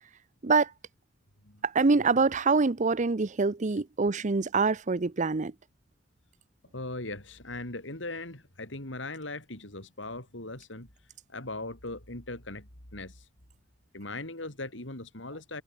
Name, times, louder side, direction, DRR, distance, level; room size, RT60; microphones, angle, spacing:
voice 1, 1.6-5.5, right 4 dB, 40° right, 0.7 m, -25 dB
voice 2, 6.7-10.9 11.3-13.3 13.9-15.6, left 2 dB, 80° left, 5.7 m, -39 dB
head